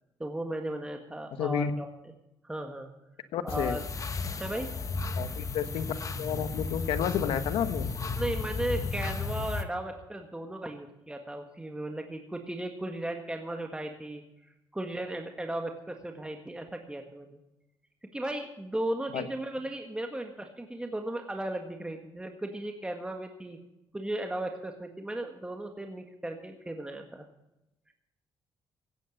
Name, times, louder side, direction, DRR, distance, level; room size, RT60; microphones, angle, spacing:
voice 1, 0.2-1.9 2.4-2.9 3.4-3.8 4.3-4.7 8.2-14.2 14.7-17.4 18.1-23.6 23.9-27.2, right 1 dB, 10° right, 4 dB, 1.7 m, -36 dB
voice 2, 1.4-1.7 3.3-3.8 5.2-5.9 6.1-7.9 19.1-19.2, left 8 dB, 90° left, 11 dB, 1.2 m, -30 dB
sound 1, 3.5-9.6, left 4 dB, 40° left, 1.2 m, -34 dB
16.5 x 9.2 x 6.4 m, 0.92 s
cardioid pair, 90°, 9 cm